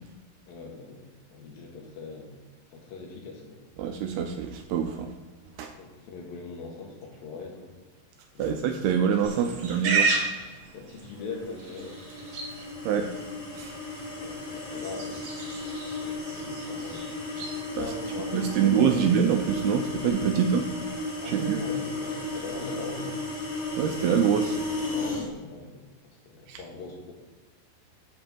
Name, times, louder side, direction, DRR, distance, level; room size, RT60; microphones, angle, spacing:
voice 1, 0.4-2.3 2.7-3.6 5.7-7.7 8.3-8.6 10.7-12.0 13.9-15.3 15.7-17.1 17.7-19.1 20.2-20.4 21.2-23.2 24.9-27.1, left 4 dB, 65° left, 0 dB, 3.3 m, -41 dB
voice 2, 3.8-5.1 5.6-5.7 8.4-10.1 12.9-13.1 13.6-13.7 17.8-17.9 18.3-20.6 21.2-21.6 23.8-24.6 26.5-26.6, right 8 dB, 80° right, 4 dB, 2.5 m, -25 dB
Livestock farm animals working animals, 9.2-20.1, right 4 dB, 55° right, 2.5 m, -35 dB
sound 1, 11.4-25.3, left 2 dB, 30° left, 2.6 m, -34 dB
7.6 x 5.4 x 7.1 m, 1.3 s
omnidirectional pair, 4.7 m